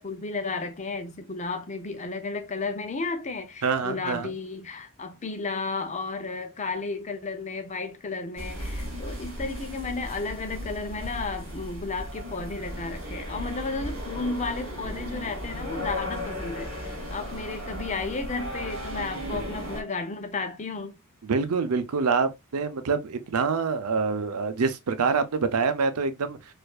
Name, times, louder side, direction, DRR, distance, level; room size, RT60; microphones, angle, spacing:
voice 1, 0.0-21.0, left 3 dB, 35° left, 0.6 m, -33 dB
voice 2, 3.6-4.3 19.3-19.5 21.2-26.4, right 5 dB, 90° right, 0.6 m, -26 dB
sound 1, 8.4-19.8, equal, 60° right, 2.0 m, -35 dB
4.4 x 2.6 x 2.3 m
head